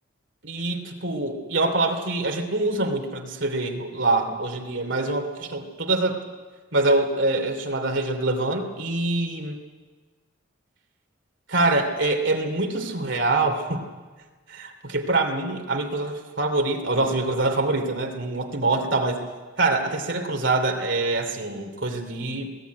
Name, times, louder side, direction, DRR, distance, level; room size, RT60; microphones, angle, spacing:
voice 1, 0.4-6.2 6.7-9.5 11.5-13.8 14.5-19.2 19.6-22.5, right 2 dB, 65° right, 4 dB, 2.9 m, -25 dB
20.5 x 16.5 x 9.5 m, 1.4 s
head